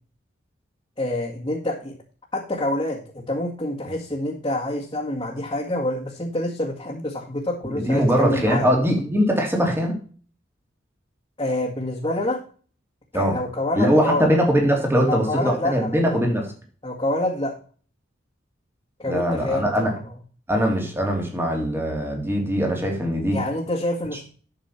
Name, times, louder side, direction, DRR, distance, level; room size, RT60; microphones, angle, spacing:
voice 1, 1.0-1.9 2.3-8.7 11.4-12.4 13.1-14.3 15.1-16.2 16.8-17.5 19.0-20.0 23.3-24.2, left 1 dB, 25° left, -4 dB, 1.9 m, -27 dB
voice 2, 7.8-10.0 13.1-13.4 13.7-16.5 19.1-19.9 20.5-23.4, equal, 10° right, 1 dB, 2.8 m, -21 dB
11.5 x 6.8 x 4.4 m, 0.41 s
head